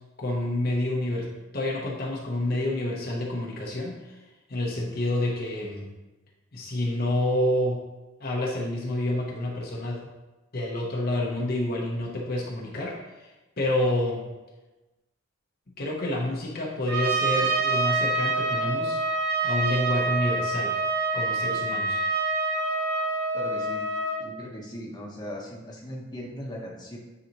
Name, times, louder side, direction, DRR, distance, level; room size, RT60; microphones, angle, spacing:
voice 1, 0.2-4.2 4.5-5.9 6.5-7.8 8.2-10.1 10.5-14.3 15.8-19.0 19.4-20.8 21.1-22.0, left 1 dB, 45° left, -2 dB, 0.8 m, -28 dB
Trumpet, 16.9-24.2, right 3 dB, 50° right, 0.9 m, -26 dB
voice 2, 23.3-23.9 24.2-27.0, equal, 20° left, -2 dB, 1.0 m, -38 dB
9.2 x 4.1 x 3.0 m, 1.1 s
head